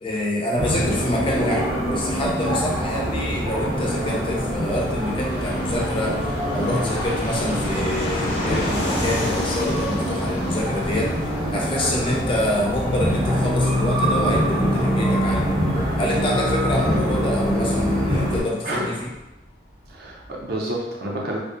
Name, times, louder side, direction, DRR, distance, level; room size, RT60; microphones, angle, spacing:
voice 1, 0.0-6.2 6.5-11.1 11.5-15.6 16.0-19.1, left 1 dB, 30° left, -2 dB, 0.4 m, -26 dB
sound 1, 0.6-18.4, equal, 30° right, 0.7 m, -24 dB
Fixed-wing aircraft airplane, 1.0-19.2 19.5-19.6 19.7-20.5, left 1 dB, 80° left, 0.6 m, -33 dB
voice 2, 18.6-19.1 19.9-21.4, right 1 dB, 60° right, -2 dB, 0.5 m, -29 dB
2.5 x 2.0 x 2.4 m, 0.98 s
head